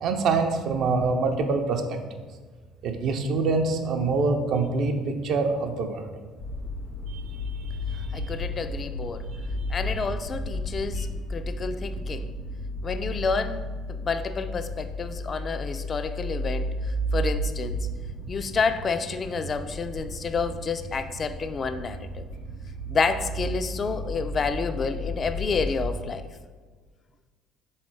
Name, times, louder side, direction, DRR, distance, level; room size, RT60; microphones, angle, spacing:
voice 1, 0.0-1.8 2.8-6.1 7.1-7.2 7.9-8.2 11.0-11.1, right 4 dB, 60° right, 5 dB, 0.5 m, -25 dB
sound 1, 6.4-26.0, equal, 90° left, 1.0 m, -33 dB
voice 2, 8.1-9.2 9.7-12.3 12.8-13.6 13.9-17.9 18.3-22.3 22.9-26.3, left 4 dB, 40° left, 10 dB, 0.3 m, -29 dB
3.7 x 3.1 x 4.5 m, 1.4 s
hypercardioid pair, 55°, 0 cm